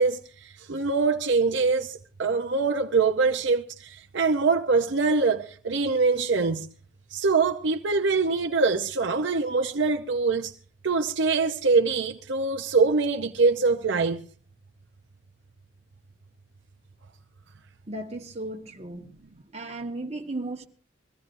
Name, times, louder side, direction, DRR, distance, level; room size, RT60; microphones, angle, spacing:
voice 1, 0.0-6.7 7.1-10.5 10.8-14.2, right 4 dB, 65° right, 0.7 m, -24 dB
voice 2, 17.9-19.1 19.5-20.7, right 2 dB, 35° right, 1.4 m, -35 dB
22.5 x 15.5 x 2.6 m
head